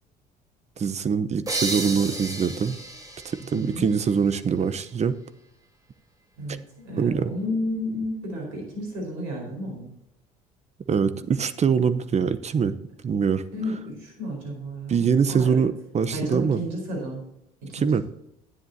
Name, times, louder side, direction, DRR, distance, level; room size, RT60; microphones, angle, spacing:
voice 1, 0.8-2.8 3.2-5.1 7.0-7.3 10.9-12.8 13.0-13.4 14.9-16.6 17.7-18.0, right 6 dB, 35° right, 12 dB, 0.9 m, -23 dB
sound 1, 1.5-4.9, right 2 dB, 20° right, 3.6 m, -33 dB
voice 2, 3.5-3.9 6.4-9.9 13.5-15.6 16.1-17.2 17.6-18.0, left 1 dB, 75° right, 0 dB, 4.6 m, -32 dB
13.0 x 10.0 x 2.8 m, 0.81 s
hypercardioid pair, 60°, 19 cm